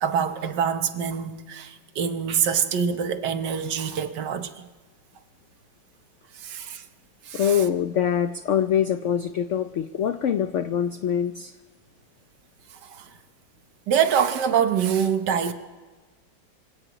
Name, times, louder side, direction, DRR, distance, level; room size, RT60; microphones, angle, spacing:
voice 1, 0.0-4.7 6.4-6.8 7.2-7.6 12.8-13.1 13.9-15.5, right 7 dB, 70° right, 1.5 m, -25 dB
voice 2, 7.3-11.5, left 9 dB, 85° left, 0.6 m, -24 dB
25.5 x 17.0 x 3.0 m
omnidirectional pair, 2.0 m